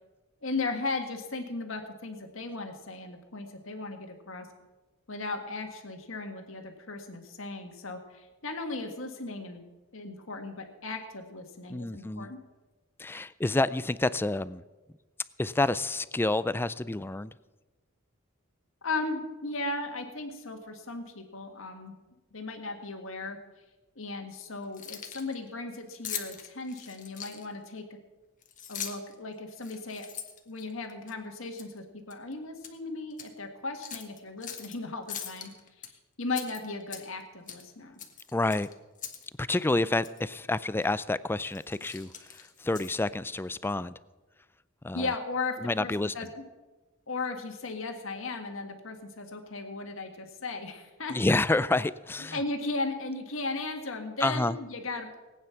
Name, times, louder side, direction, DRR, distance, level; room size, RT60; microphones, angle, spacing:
voice 1, 0.4-4.5 5.1-9.6 9.9-12.4 18.8-22.0 22.3-23.4 24.0-27.9 28.7-30.1 30.5-35.5 35.8-35.9 36.2-38.0 44.9-46.3 47.1-51.2 52.3-55.2, left 3 dB, 75° left, 4 dB, 1.9 m, -36 dB
voice 2, 11.7-12.3 13.0-14.6 15.4-17.3 38.3-38.7 39.4-43.9 44.8-45.1 45.6-46.3 51.1-52.4 54.2-54.6, left 2 dB, 10° left, 17 dB, 0.3 m, -29 dB
Keys jangling, 24.6-25.3 26.0-27.6 28.4-29.1 29.6-31.1 31.6-31.8 32.1-32.8 33.1-33.3 33.8-34.7 35.1-35.9 36.3-37.2 37.5-37.7 38.0-39.3 39.5-39.6 40.0-40.2 40.8-41.0 41.4-43.1, left 8 dB, 40° left, 1.5 m, -41 dB
18.5 x 9.5 x 5.9 m, 1.2 s
head